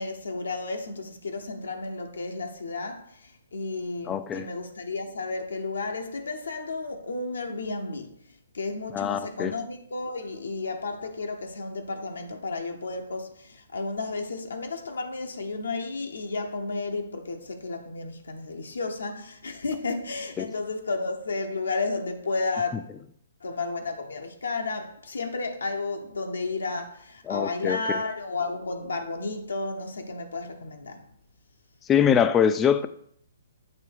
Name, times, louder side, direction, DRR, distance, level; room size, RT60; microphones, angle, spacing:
voice 1, 0.0-8.2 8.5-22.8 23.4-31.1, left 3 dB, 85° left, 0.8 m, -32 dB
voice 2, 4.1-4.5 8.9-9.5 20.4-20.5 27.3-28.0 31.9-32.9, left 8 dB, 15° left, 0.4 m, -23 dB
7.4 x 2.8 x 4.6 m
hypercardioid pair, 140°, 0 cm